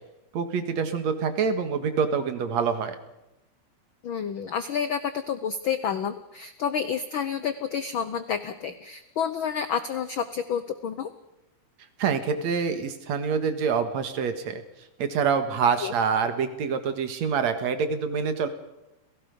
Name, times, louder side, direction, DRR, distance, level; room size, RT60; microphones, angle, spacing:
voice 1, 0.3-3.0 12.0-14.6 15.0-18.5, right 6 dB, 65° right, 8 dB, 2.8 m, -26 dB
voice 2, 4.0-11.1 15.8-15.9, left 7 dB, 85° left, 11 dB, 1.1 m, -29 dB
30.0 x 17.5 x 5.3 m, 0.93 s
omnidirectional pair, 3.5 m